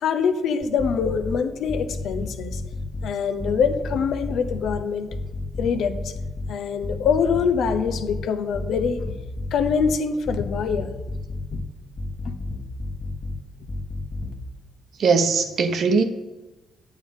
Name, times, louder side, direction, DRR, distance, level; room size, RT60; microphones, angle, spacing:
voice 1, 0.0-2.6 3.0-5.1 5.6-6.1 6.5-9.1 9.5-10.9 11.5-11.6 12.3-12.4, left 6 dB, 75° left, 9 dB, 0.8 m, -24 dB
sound 1, 0.6-1.3 1.7-3.1 3.4-4.8 5.1-6.5 6.8-8.2 8.5-9.9 10.2-11.6 12.0-13.3 13.7-14.3, left 2 dB, 35° left, 1.5 m, -31 dB
voice 2, 15.0-16.0, right 5 dB, 60° right, 7 dB, 0.9 m, -20 dB
9.0 x 8.4 x 3.6 m, 1.1 s
cardioid pair, 90°, 0 cm